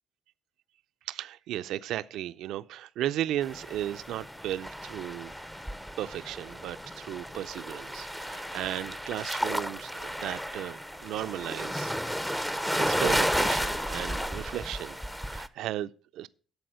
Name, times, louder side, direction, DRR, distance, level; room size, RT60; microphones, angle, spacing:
voice 1, 1.1-5.3 6.0-11.9 12.3-16.3, right 12 dB, 85° right, 0.4 m, -35 dB
sound 1, 3.4-15.5, equal, 5° left, 0.6 m, -33 dB
11.5 x 4.2 x 6.3 m
cardioid pair, 90°, 0 cm